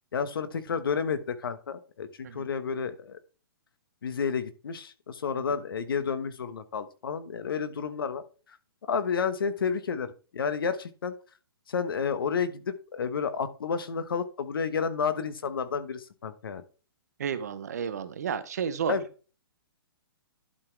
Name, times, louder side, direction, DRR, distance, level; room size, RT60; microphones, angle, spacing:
voice 1, 0.1-3.2 4.0-8.2 8.8-11.1 11.7-16.6 18.9-19.0, left 6 dB, 65° left, 12 dB, 1.1 m, -31 dB
voice 2, 17.2-18.9, right 7 dB, 40° right, 12 dB, 0.8 m, -32 dB
11.5 x 4.1 x 4.5 m, 0.36 s
hypercardioid pair, 180°, 13 cm